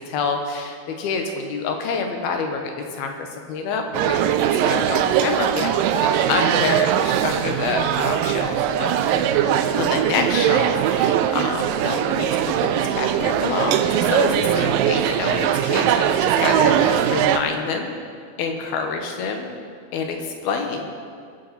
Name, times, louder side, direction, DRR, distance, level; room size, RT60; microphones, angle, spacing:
voice 1, 0.0-8.9 9.7-12.5 13.0-18.0 18.4-19.5 19.9-20.2 20.4-20.8, left 5 dB, 80° left, 3 dB, 3.2 m, -27 dB
sound 1, 3.9-17.4, right 10 dB, 80° right, 2.1 m, -20 dB
21.5 x 9.9 x 4.3 m, 2.2 s
omnidirectional pair, 4.4 m